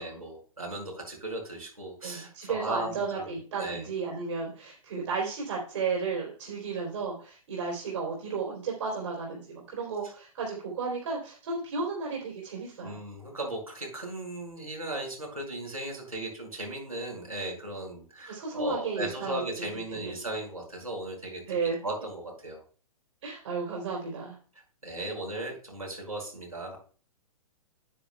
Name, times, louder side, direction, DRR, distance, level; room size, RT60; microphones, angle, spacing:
voice 1, 0.0-3.8 6.7-6.8 12.8-21.4 21.8-22.6 24.8-26.8, right 1 dB, 90° right, -1 dB, 5.3 m, -37 dB
voice 2, 2.0-13.0 18.3-19.4 19.9-20.2 21.5-21.8 23.2-24.4, right 4 dB, 55° right, -2 dB, 3.6 m, -33 dB
9.9 x 9.5 x 2.3 m, 0.40 s
figure-of-eight pair, 115°, 18 cm